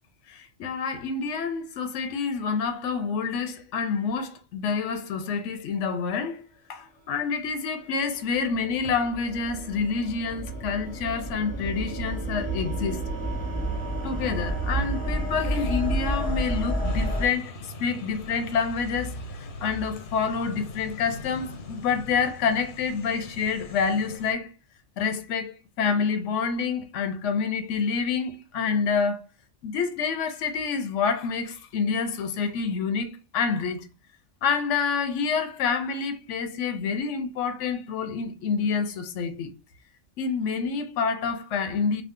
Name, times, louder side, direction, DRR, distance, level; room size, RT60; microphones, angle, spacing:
voice 1, 0.3-6.4 6.7-13.0 14.0-19.1 19.6-24.5 25.0-29.2 29.6-33.9 34.4-39.5 40.2-42.0, left 5 dB, 85° left, 0.9 m, -28 dB
sound 1, 7.6-17.3, right 1 dB, 10° left, 0.5 m, -30 dB
sound 2, 16.8-24.3, left 3 dB, 55° left, 0.7 m, -41 dB
2.6 x 2.3 x 3.5 m
omnidirectional pair, 1.2 m